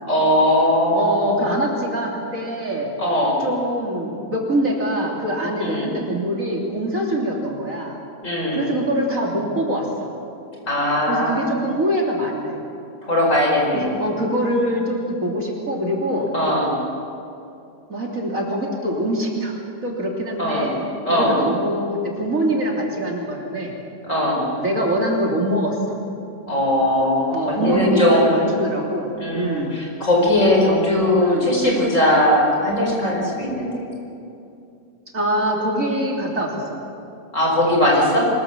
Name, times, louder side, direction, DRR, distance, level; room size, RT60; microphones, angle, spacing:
voice 1, 0.0-1.3 3.0-3.4 5.6-5.9 8.2-8.7 10.7-11.5 13.0-14.1 16.3-16.7 20.4-20.7 21.1-21.4 24.0-24.4 26.5-28.5 29.2-33.9 37.3-38.2, left 1 dB, 45° left, -1 dB, 5.5 m, -19 dB
voice 2, 0.9-2.9 3.4-8.0 8.5-10.1 11.1-12.6 13.7-16.3 17.9-19.6 19.8-20.8 21.1-23.8 24.6-25.8 27.3-29.8 31.2-31.5 35.1-36.8, right 1 dB, 50° right, -1 dB, 3.6 m, -24 dB
24.5 x 21.0 x 7.4 m, 2.7 s
omnidirectional pair, 1.8 m